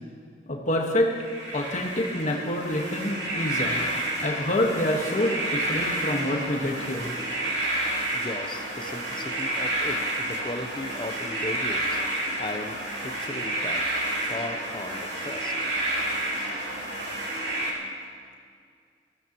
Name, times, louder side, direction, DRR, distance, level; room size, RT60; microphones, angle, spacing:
voice 1, 0.5-1.1 1.5-3.8 4.2-7.1, left 1 dB, 45° left, 0 dB, 1.5 m, -27 dB
sound 1, 1.1-17.7, right 1 dB, 75° right, 2.7 m, -30 dB
voice 2, 8.1-12.0 12.4-13.8 14.2-15.7, left 2 dB, 25° left, 6 dB, 0.8 m, -37 dB
17.5 x 16.0 x 3.1 m, 2.1 s
head